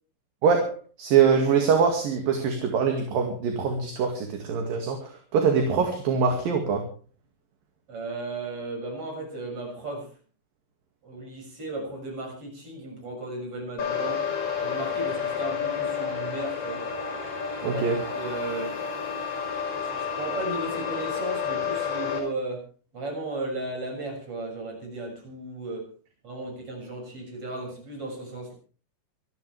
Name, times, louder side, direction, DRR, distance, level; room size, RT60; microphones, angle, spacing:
voice 1, 0.4-6.8 17.6-18.0, right 6 dB, 55° right, 3 dB, 3.6 m, -23 dB
voice 2, 7.9-10.1 11.0-14.2 14.6-16.8 17.6-17.9 18.1-18.7 19.8-22.6 22.9-25.9 26.2-28.5, right 2 dB, 30° right, 1 dB, 7.7 m, -35 dB
sound 1, 13.8-22.2, left 6 dB, 35° left, 6.7 m, -30 dB
26.0 x 12.0 x 3.5 m, 0.39 s
omnidirectional pair, 5.1 m